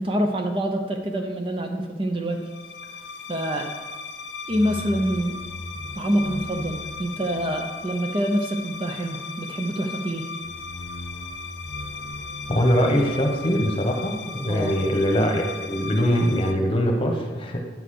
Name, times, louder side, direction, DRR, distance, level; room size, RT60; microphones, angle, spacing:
voice 1, 0.0-2.5 3.3-3.7 4.5-5.4 5.9-10.3 14.5-14.7, right 1 dB, 30° right, 4 dB, 0.6 m, -26 dB
sound 1, 2.4-16.5, left 4 dB, 75° left, 0.7 m, -36 dB
voice 2, 12.5-17.6, equal, 30° left, 2 dB, 1.1 m, -22 dB
9.2 x 4.0 x 6.5 m, 1.3 s
head